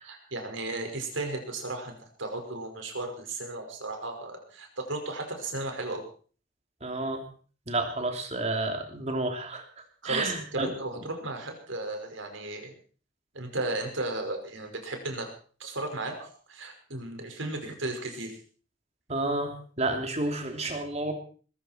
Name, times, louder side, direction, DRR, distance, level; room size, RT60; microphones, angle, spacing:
voice 1, 0.0-6.0 10.0-12.7 13.3-15.3 15.6-18.3, right 2 dB, 90° right, 4 dB, 5.4 m, -35 dB
voice 2, 6.8-7.2 7.7-9.6 10.0-10.7 19.1-21.1, right 2 dB, 35° right, 4 dB, 3.0 m, -30 dB
21.5 x 14.5 x 4.5 m, 0.42 s
head